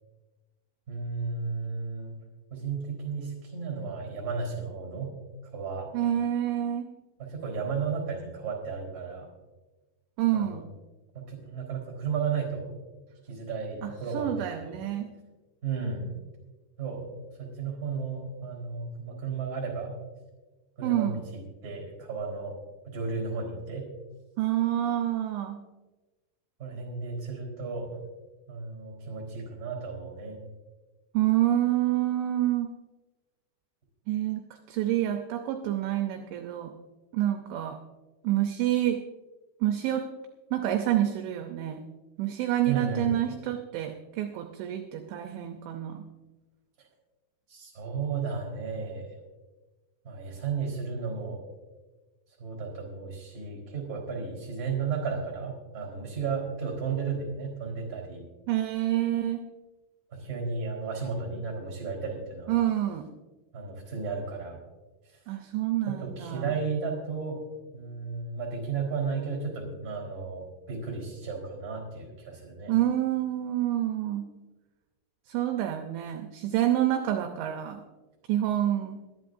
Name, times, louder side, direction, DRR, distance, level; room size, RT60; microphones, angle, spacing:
voice 1, 0.9-2.2 2.5-5.1 5.5-5.9 7.2-9.3 10.3-10.6 11.1-12.7 13.2-14.8 15.6-16.1 16.8-17.1 17.4-19.9 20.8-22.6 22.8-23.9 26.6-28.0 28.5-30.4 42.6-43.1 47.5-49.1 50.0-51.4 52.4-58.2 60.1-62.7 63.5-64.6 65.1-65.2 65.9-67.4 67.7-72.7, right 5 dB, 20° right, 1 dB, 3.7 m, -34 dB
voice 2, 5.9-6.9 10.2-10.7 13.8-15.1 20.8-21.2 24.4-25.6 31.1-32.7 34.1-34.4 34.7-36.7 37.1-37.8 38.2-39.0 39.6-40.1 40.5-41.8 42.2-46.0 58.5-59.5 62.5-63.0 65.3-66.5 72.7-74.3 75.3-77.8 78.3-79.0, right 12 dB, 80° right, 5 dB, 2.9 m, -28 dB
22.0 x 11.5 x 2.6 m, 1.2 s
omnidirectional pair, 5.8 m